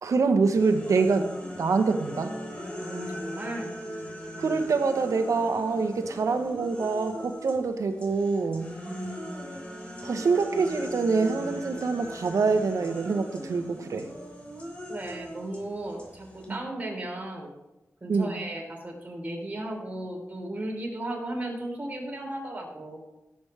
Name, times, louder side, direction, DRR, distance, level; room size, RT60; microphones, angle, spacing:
voice 1, 0.0-1.3 1.6-2.3 4.4-8.7 10.0-14.1 16.5-16.6 18.1-18.4, right 4 dB, 85° right, 7 dB, 1.1 m, -25 dB
sound 1, 0.5-7.6 8.0-16.5, equal, 20° left, 3.1 m, -39 dB
voice 2, 2.8-3.7 8.8-9.3 14.9-17.5 18.0-23.0, right 1 dB, 30° right, -1 dB, 3.8 m, -35 dB
17.0 x 7.9 x 3.4 m, 1.0 s
wide cardioid pair, 85°, 5 cm